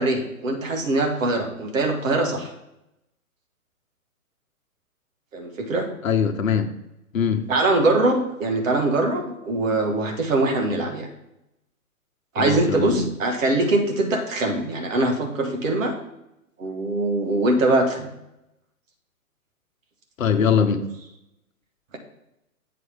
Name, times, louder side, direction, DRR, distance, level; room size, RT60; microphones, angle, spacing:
voice 1, 0.0-2.5 5.3-5.9 7.5-11.1 12.4-16.0 16.6-18.1, right 2 dB, 60° right, 4 dB, 1.8 m, -22 dB
voice 2, 6.0-6.7 7.1-7.4 12.4-13.1 20.2-20.8, left 7 dB, 65° left, 8 dB, 1.0 m, -21 dB
7.8 x 4.8 x 5.1 m, 0.87 s
figure-of-eight pair, 120°, 44 cm